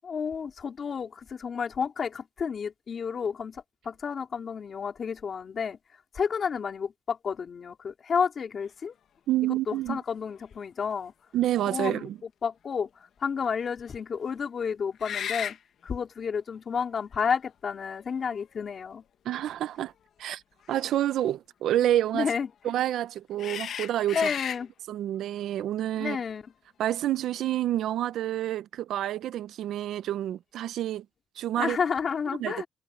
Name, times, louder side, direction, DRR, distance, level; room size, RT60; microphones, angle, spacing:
voice 1, 0.0-5.8 6.1-8.9 9.5-11.1 11.7-12.1 12.4-12.9 13.2-15.6 15.8-19.0 22.1-22.5 24.1-24.7 26.0-26.5 31.6-32.7, left 6 dB, 40° left, 4.0 m, -31 dB
voice 2, 9.3-10.0 11.3-12.2 19.2-19.9 20.2-20.4 20.7-22.3 22.6-24.3 24.9-26.2 26.8-31.0 31.4-31.8 32.4-32.5, right 12 dB, 85° right, 0.6 m, -28 dB
sound 1, 9.7-9.8 10.3-10.5 15.0-15.6 16.8-16.9 17.9-18.7 20.6-20.8 23.4-24.6, left 9 dB, 60° left, 1.1 m, -35 dB
cardioid pair, 155°, 0 cm